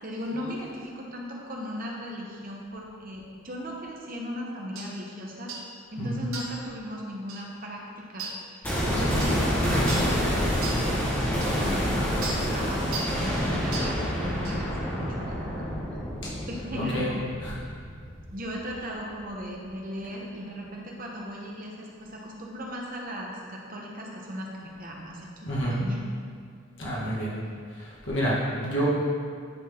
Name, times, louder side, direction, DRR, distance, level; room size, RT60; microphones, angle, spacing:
voice 1, 0.0-5.5 5.9-8.3 8.8-11.0 11.6-15.7 16.5-17.2 18.3-26.0, equal, 40° right, -2 dB, 1.0 m, -37 dB
sound 1, 4.8-4.9 5.5-5.7 6.3-6.6 7.3-7.5 8.2-8.4 9.2-9.4 9.9-10.1 10.6-10.8 11.4-11.5 12.2-12.4 12.9-13.2 13.7-13.9 14.4-14.6, right 3 dB, 75° right, 1.1 m, -35 dB
sound 2, 8.6-18.6 18.9-19.0, equal, 10° left, 1.4 m, -28 dB
voice 2, 16.8-17.1 25.5-25.7 26.8-27.3 28.1-28.4 28.6-28.8, equal, 55° left, -7 dB, 1.7 m, -28 dB
10.0 x 4.0 x 3.7 m, 2.1 s
head